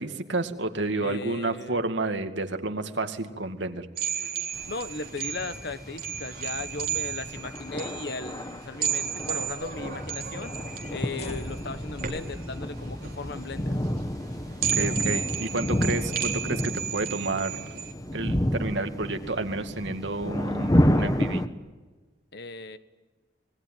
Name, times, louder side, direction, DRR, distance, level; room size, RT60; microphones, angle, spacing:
voice 1, 0.0-3.9 14.7-17.6 18.1-21.4, right 2 dB, 75° right, 6 dB, 2.4 m, -30 dB
voice 2, 0.9-1.8 4.7-10.5 10.9-13.8 22.3-22.8, left 3 dB, 60° left, 11 dB, 1.4 m, -37 dB
sound 1, 4.0-17.9, right 9 dB, 55° right, 3.8 m, -33 dB
sound 2, 4.5-21.5, equal, 20° left, 1.4 m, -30 dB
sound 3, 11.1-17.5, left 1 dB, 35° left, 2.0 m, -47 dB
27.0 x 21.5 x 9.3 m, 1.3 s
head